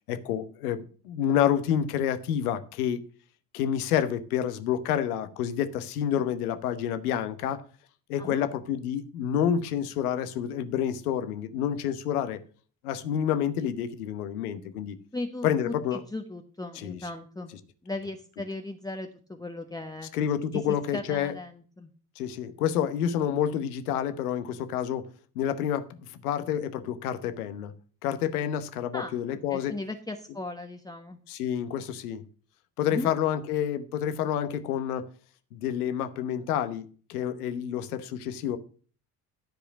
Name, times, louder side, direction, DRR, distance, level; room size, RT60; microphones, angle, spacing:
voice 1, 0.1-3.0 3.5-7.6 8.1-12.4 12.8-15.0 15.4-16.0 16.8-17.0 20.1-21.3 22.2-25.1 25.4-25.9 26.2-27.7 28.0-29.7 31.3-32.2 32.8-35.0 35.5-38.6, left 9 dB, 75° left, 1.1 m, -28 dB
voice 2, 15.1-17.5 17.8-20.1 20.5-21.9 28.9-31.2 32.9-33.1, left 2 dB, 10° left, 1.1 m, -37 dB
13.0 x 5.0 x 6.1 m
figure-of-eight pair, 55°, 45 cm